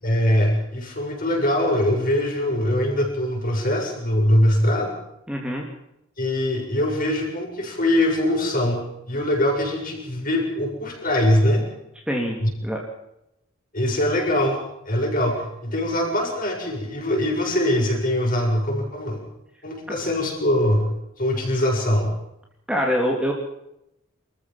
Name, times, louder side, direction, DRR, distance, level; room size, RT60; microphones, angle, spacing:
voice 1, 0.0-4.9 6.2-11.6 12.4-12.5 13.7-14.6 14.9-19.2 19.6-20.9 21.2-22.1, left 1 dB, 40° left, 0 dB, 7.1 m, -22 dB
voice 2, 5.3-5.7 12.1-12.8 19.9-20.0 22.7-23.3, equal, 5° right, -1 dB, 3.0 m, -25 dB
25.5 x 14.5 x 7.3 m, 0.83 s
head